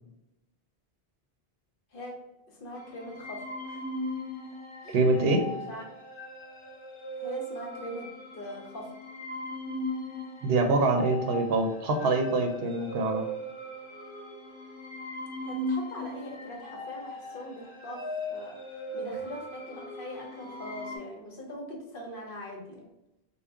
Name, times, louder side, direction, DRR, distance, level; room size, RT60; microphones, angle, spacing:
voice 1, 1.9-3.8 4.8-5.8 7.2-8.1 8.3-8.9 15.4-18.6 18.9-22.9, left 1 dB, 60° left, 1 dB, 0.9 m, -42 dB
sound 1, 2.7-21.0, left 1 dB, 35° left, 0.7 m, -38 dB
voice 2, 4.9-5.4 10.4-13.3, right 2 dB, 70° right, 4 dB, 0.8 m, -25 dB
3.5 x 2.2 x 3.4 m, 0.90 s
omnidirectional pair, 1.0 m